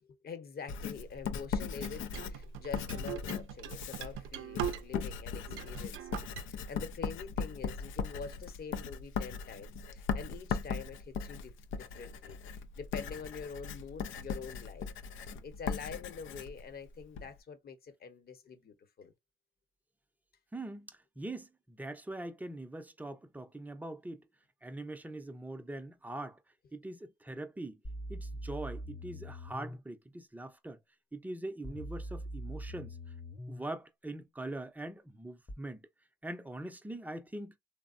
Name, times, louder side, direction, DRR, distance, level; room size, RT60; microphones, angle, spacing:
voice 1, 0.0-12.4 12.8-14.9 15.1-19.1, left 5 dB, 50° left, 0.9 m, -46 dB
Writing, 0.7-17.3, left 6 dB, 80° left, 0.5 m, -39 dB
sound 1, 1.8-5.1 5.5-6.4, right 12 dB, 90° right, 0.4 m, -41 dB
voice 2, 20.5-24.2 24.6-26.4 26.7-27.8 28.1-30.8 31.1-33.0 33.5-35.9 36.2-37.5, right 2 dB, 10° right, 0.5 m, -42 dB
sound 2, 27.8-29.8 31.6-33.6 35.5-35.6, equal, 25° left, 0.8 m, -42 dB
3.3 x 2.0 x 2.5 m
cardioid pair, 90°, 20 cm